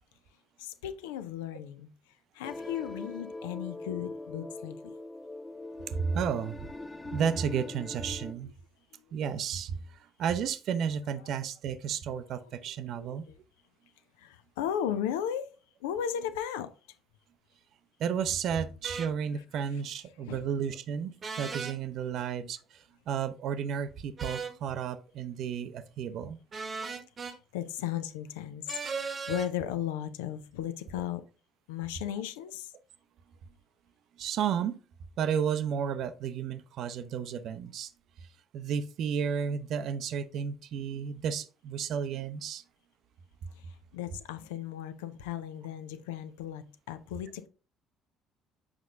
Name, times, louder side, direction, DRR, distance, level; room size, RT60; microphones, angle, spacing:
voice 1, 0.6-1.9 2.3-4.8 8.9-9.1 11.2-11.3 13.0-13.4 14.2-15.5 15.8-16.7 19.4-19.5 20.3-20.5 22.2-22.3 27.2-31.2 31.7-32.7 43.6-47.5, left 10 dB, 70° left, 0.5 m, -36 dB
sound 1, 2.4-8.3, left 2 dB, 15° left, 0.6 m, -42 dB
voice 2, 5.9-6.7 7.1-8.5 9.1-13.2 18.0-26.4 34.2-34.8 35.2-37.9 38.5-42.6, right 7 dB, 55° right, 0.6 m, -32 dB
sound 2, 18.8-19.1 21.2-21.8 24.2-24.6 26.5-27.4 28.7-29.5, right 5 dB, 35° right, 1.0 m, -36 dB
7.3 x 5.2 x 2.5 m
figure-of-eight pair, 50°, 0 cm